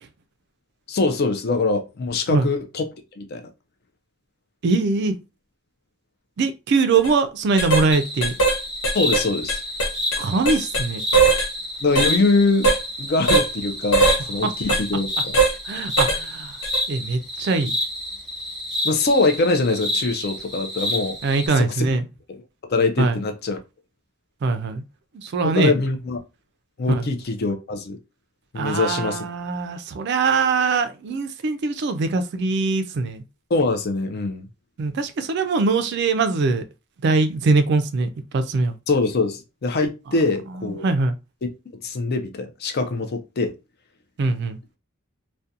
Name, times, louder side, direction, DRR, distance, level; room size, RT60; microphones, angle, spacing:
voice 1, 0.9-2.9 3.2-3.5 8.9-9.6 11.8-15.4 18.8-21.2 21.6-21.9 22.7-23.6 25.4-26.2 26.8-28.0 28.5-29.2 33.5-34.5 38.9-40.8 41.4-41.5 41.8-43.5, left 3 dB, 50° left, 0.5 m, -23 dB
voice 2, 4.6-5.1 6.4-8.3 10.2-11.0 14.4-14.5 15.7-16.5 16.9-17.8 21.2-22.1 23.0-23.2 24.4-24.8 25.1-25.7 26.9-27.1 28.6-33.2 34.8-36.6 37.0-38.7 40.6-41.2 44.2-44.6, right 3 dB, 55° right, 0.4 m, -22 dB
sound 1, 6.9-7.1 7.6-7.9 8.2-8.6 8.8-10.9 11.1-11.5 12.0-12.1 12.6-12.8 13.3-13.5 13.9-14.2 14.7-14.8 15.3-15.6 16.0-16.2 16.6-16.8, right 3 dB, 90° left, 0.8 m, -19 dB
sound 2, 7.9-21.5, left 1 dB, ahead, 0.7 m, -29 dB
2.4 x 2.2 x 2.7 m
head